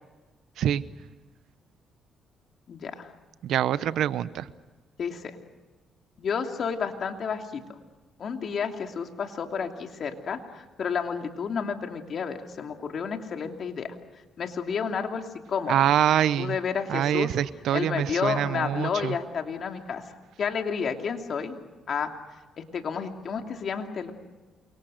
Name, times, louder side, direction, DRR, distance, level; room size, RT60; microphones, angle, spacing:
voice 1, 2.7-3.1 5.0-5.3 6.2-7.6 8.2-13.9 14.4-15.8 16.4-17.3 17.7-20.0 20.4-21.6 21.9-22.1 22.6-24.1, left 6 dB, 55° left, 4 dB, 2.9 m, -31 dB
voice 2, 3.4-4.5 15.7-16.5 16.9-19.1, right 10 dB, 80° right, 16 dB, 0.8 m, -25 dB
28.5 x 24.5 x 6.5 m, 1.2 s
cardioid pair, 90°, 0 cm